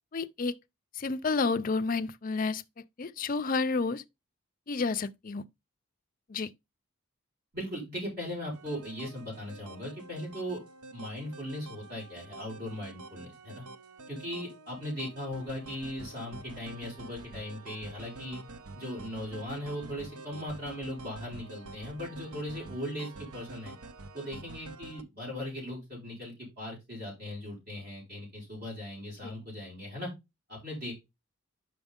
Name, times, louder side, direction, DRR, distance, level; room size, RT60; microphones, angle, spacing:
voice 1, 0.1-0.6 0.9-2.6 3.0-4.0 4.7-5.4 6.3-6.5 29.2-29.3, left 4 dB, 40° left, 0.4 m, -30 dB
voice 2, 7.5-10.6 10.9-13.6 14.1-18.4 18.7-23.7 24.1-30.1 30.5-30.9, left 1 dB, 45° right, 4.4 m, -38 dB
sound 1, 8.5-25.0, right 2 dB, 80° right, 0.6 m, -47 dB
6.1 x 5.7 x 3.6 m
head